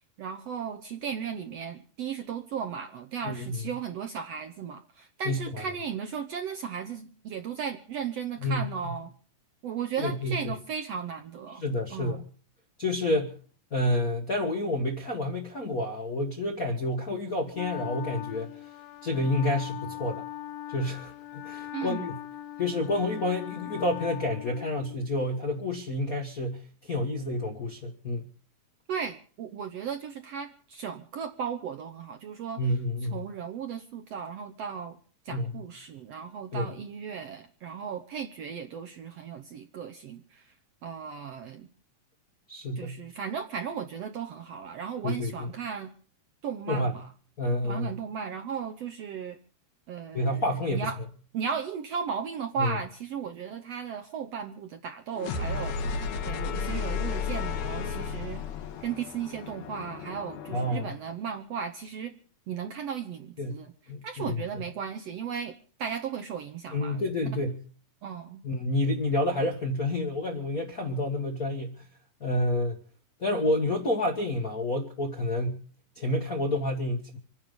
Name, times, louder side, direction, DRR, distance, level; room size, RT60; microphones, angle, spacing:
voice 1, 0.2-9.1 9.6-11.6 11.9-12.2 21.7-22.1 28.9-32.6 33.1-35.0 35.2-40.5 40.8-41.7 42.8-45.9 46.4-47.1 47.6-49.4 49.9-50.4 50.7-51.0 51.3-58.4 58.8-62.1 62.5-63.7 64.0-67.0 68.0-68.4, right 7 dB, 65° right, 5 dB, 1.7 m, -36 dB
voice 2, 5.2-5.6 8.4-8.9 10.0-10.5 11.6-12.2 12.8-13.4 13.7-18.5 19.0-20.2 20.7-22.1 22.6-28.3 32.6-33.2 35.3-35.6 36.5-36.7 42.5-43.0 45.0-45.3 46.7-47.0 47.4-48.0 50.1-51.0 52.6-52.8 60.5-60.9 63.4-63.6 63.9-64.4 66.7-67.6 68.4-71.8 72.2-72.8 73.2-75.6 75.9-77.2, left 1 dB, 45° left, 0 dB, 1.2 m, -29 dB
Wind instrument woodwind instrument, 17.5-25.1, left 13 dB, 85° left, 2.8 m, -40 dB
sound 1, 55.2-61.0, left 5 dB, 60° left, 2.6 m, -33 dB
26.0 x 9.8 x 5.3 m, 0.43 s
omnidirectional pair, 4.0 m